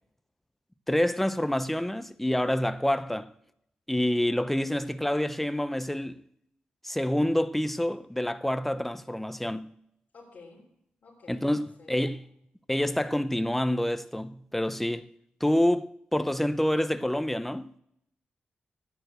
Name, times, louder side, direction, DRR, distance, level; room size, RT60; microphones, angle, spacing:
voice 1, 0.9-3.3 3.9-6.2 6.8-9.7 11.3-12.2 12.7-15.1 15.4-17.6, left 1 dB, 5° left, 0.6 m, -27 dB
voice 2, 10.1-10.7 11.0-12.1, left 3 dB, 55° left, 3.6 m, -52 dB
13.5 x 9.1 x 7.9 m
wide cardioid pair, 110°, 3 cm